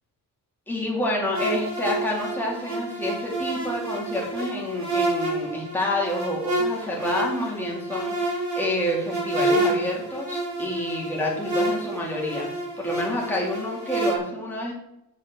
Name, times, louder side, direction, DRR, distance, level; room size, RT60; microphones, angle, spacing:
voice 1, 0.7-12.5 12.8-14.7, left 1 dB, 5° left, -3 dB, 2.7 m, -28 dB
sound 1, 1.3-14.2, right 1 dB, 50° right, 3.3 m, -29 dB
7.0 x 6.6 x 7.6 m, 0.84 s
wide cardioid pair, 170°, 37 cm